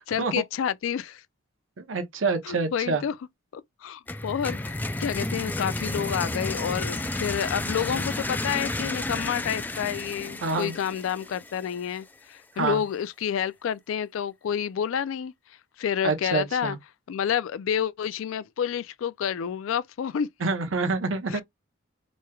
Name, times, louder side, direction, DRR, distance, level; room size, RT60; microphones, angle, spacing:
voice 1, 0.1-1.2 2.4-3.2 3.5-15.3 15.8-16.8 17.1-20.3 21.3-21.4, left 8 dB, 85° left, 0.3 m, -29 dB
voice 2, 1.8-3.0 10.4-10.8 12.6-12.8 16.0-16.8 20.4-21.4, right 4 dB, 80° right, 0.8 m, -27 dB
sound 1, 4.1-11.8, left 2 dB, 10° left, 0.3 m, -32 dB
4.4 x 3.1 x 2.3 m
head